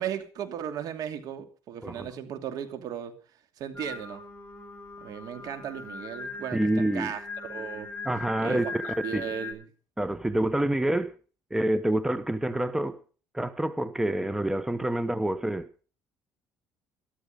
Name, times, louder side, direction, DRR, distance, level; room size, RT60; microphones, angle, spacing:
voice 1, 0.0-3.1 3.6-4.2 5.0-7.9 8.4-9.7, right 9 dB, 65° right, 2.7 m, -36 dB
Singing, 3.8-9.5, left 3 dB, 20° left, 6.1 m, -40 dB
voice 2, 6.5-7.1 8.0-9.2 10.0-11.1 11.5-13.0 13.3-15.7, right 1 dB, 5° right, 0.9 m, -27 dB
13.5 x 13.0 x 5.2 m
cardioid pair, 110°, 7 cm